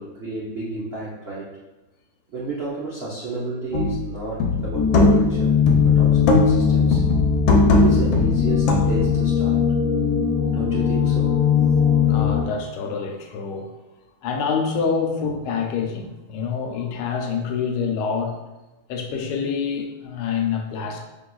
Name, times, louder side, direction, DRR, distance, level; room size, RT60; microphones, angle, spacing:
voice 1, 0.0-1.5 2.3-5.6 5.8-7.1 7.7-9.6 10.5-11.3 11.6-11.8, right 3 dB, 75° right, -8 dB, 0.5 m, -31 dB
sound 1, 3.7-4.0 4.4-5.4 5.7-6.7 6.9-9.1, left 2 dB, 70° left, 1.3 m, -19 dB
sound 2, 4.7-12.4, left 7 dB, 55° left, 1.1 m, -20 dB
voice 2, 12.1-13.7 14.2-18.4 18.9-21.0, left 6 dB, 85° left, 3 dB, 1.5 m, -26 dB
5.2 x 3.6 x 2.3 m, 1.1 s
omnidirectional pair, 2.3 m